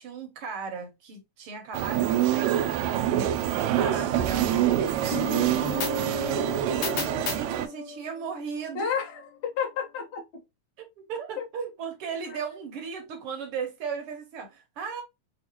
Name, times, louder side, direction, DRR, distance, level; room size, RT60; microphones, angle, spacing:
voice 1, 0.0-8.9 10.8-15.0, right 5 dB, 65° right, 1.5 m, -37 dB
sound 1, 1.7-7.7, right 11 dB, 80° right, 1.7 m, -26 dB
sound 2, 5.1-8.7, left 4 dB, 80° left, 2.6 m, -34 dB
voice 2, 8.7-10.4 11.4-11.5 12.3-12.6, left 7 dB, 50° left, 1.3 m, -32 dB
6.2 x 2.4 x 2.8 m
omnidirectional pair, 3.4 m